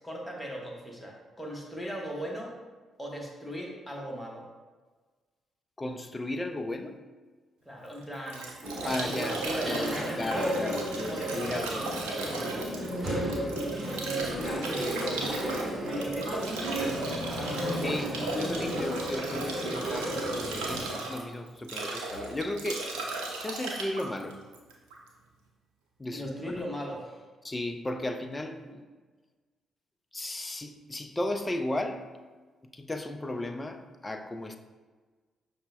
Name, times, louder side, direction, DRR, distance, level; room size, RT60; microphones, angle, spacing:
voice 1, 0.0-2.6 3.0-4.5 7.6-8.5 8.8-12.1 14.3-15.5 15.9-18.8 26.1-27.2 28.7-28.8, equal, 10° left, -2 dB, 1.0 m, -38 dB
voice 2, 5.8-7.0 8.9-9.4 9.6-12.4 13.0-13.5 17.8-22.9 23.4-24.4 26.0-26.5 27.4-28.6 30.1-32.1 32.6-34.6, left 1 dB, 25° left, 6 dB, 0.4 m, -35 dB
Bathtub (filling or washing) / Drip / Trickle dribble, 7.8-25.1, right 3 dB, 80° right, 0.4 m, -37 dB
sound 1, 8.6-21.0, equal, 30° right, 1.1 m, -33 dB
5.4 x 2.1 x 2.5 m, 1.4 s
hypercardioid pair, 40°, 0 cm